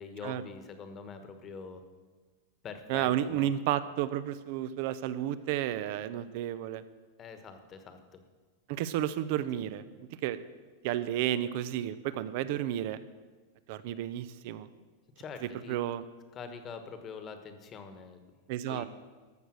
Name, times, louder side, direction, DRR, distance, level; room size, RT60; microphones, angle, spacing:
voice 1, 0.0-1.8 2.6-3.5 7.2-8.2 15.2-15.8 16.3-18.2 18.7-18.9, left 5 dB, 25° left, 8 dB, 1.3 m, -44 dB
voice 2, 2.9-6.8 8.7-10.4 10.8-13.0 13.7-14.7 15.7-16.0 18.5-18.8, right 12 dB, 55° right, 14 dB, 0.7 m, -32 dB
13.5 x 6.7 x 6.3 m, 1.4 s
supercardioid pair, 135°, 0 cm